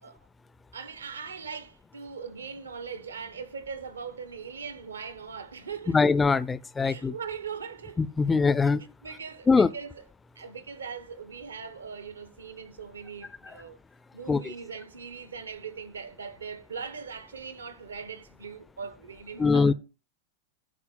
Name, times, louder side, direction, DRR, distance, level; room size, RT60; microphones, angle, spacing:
voice 1, 0.7-6.0 6.8-8.0 8.8-10.0 10.3-13.8 14.1-19.7, right 6 dB, 70° right, 1.2 m, -40 dB
voice 2, 5.9-7.1 8.0-8.8 9.5-9.7 14.3-14.5 19.4-19.7, left 4 dB, 15° left, 0.6 m, -22 dB
10.0 x 4.4 x 7.2 m
figure-of-eight pair, 90°, 0 cm